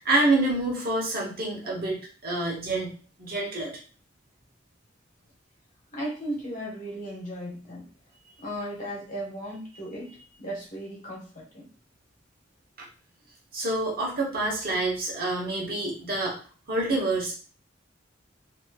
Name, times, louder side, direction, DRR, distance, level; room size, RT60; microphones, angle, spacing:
voice 1, 0.0-2.9 3.2-3.8 12.8-12.9 13.5-16.4 16.7-17.4, right 2 dB, 55° right, -2 dB, 1.1 m, -27 dB
voice 2, 5.9-7.8 8.4-10.1 10.4-11.6, equal, 45° left, -4 dB, 1.2 m, -36 dB
3.0 x 2.8 x 2.3 m, 0.38 s
head